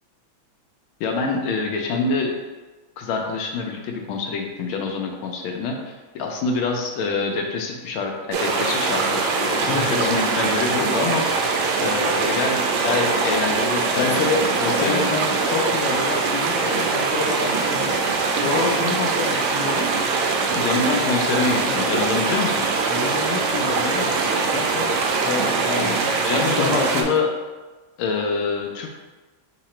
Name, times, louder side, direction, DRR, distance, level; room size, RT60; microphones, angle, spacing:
voice 1, 1.0-2.4 3.0-11.2 11.8-14.2 14.8-15.1 20.5-22.7 25.8-27.3 28.0-28.9, left 4 dB, 85° left, 2 dB, 1.5 m, -26 dB
sound 1, 8.3-27.0, right 4 dB, 85° right, 1.4 m, -22 dB
voice 2, 9.6-10.2 10.6-10.9 13.9-18.0 18.4-19.9 21.5-22.0 22.9-25.0 25.2-26.0 26.4-27.1, left 4 dB, 70° left, 0 dB, 1.1 m, -28 dB
3.8 x 2.9 x 4.2 m, 1.2 s
omnidirectional pair, 2.2 m